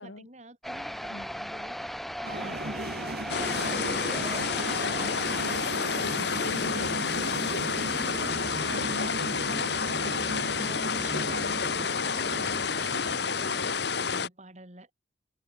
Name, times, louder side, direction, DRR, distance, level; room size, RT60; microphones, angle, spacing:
voice 1, 0.0-1.7 2.2-5.2 7.2-10.0 10.6-14.9, right 2 dB, 35° right, 3.7 m, -48 dB
sound 1, 0.6-12.1, equal, ahead, 1.0 m, -41 dB
sound 2, 2.2-13.2, right 1 dB, 55° right, 2.2 m, -37 dB
sound 3, 3.3-14.3, left 5 dB, 60° left, 1.2 m, -29 dB
voice 2, 6.0-7.7 10.6-10.7, left 1 dB, 80° left, 3.0 m, -42 dB
head